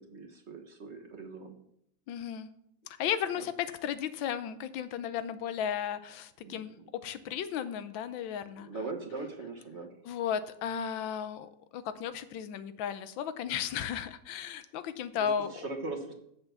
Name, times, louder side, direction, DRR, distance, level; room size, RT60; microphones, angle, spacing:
voice 1, 0.0-1.6 3.3-3.5 6.4-6.8 8.4-9.9 15.1-16.1, right 3 dB, 40° right, 3 dB, 1.3 m, -41 dB
voice 2, 2.1-2.5 2.9-8.7 10.0-15.5, left 8 dB, 90° left, 12 dB, 1.5 m, -35 dB
8.1 x 6.8 x 7.0 m, 0.74 s
omnidirectional pair, 2.0 m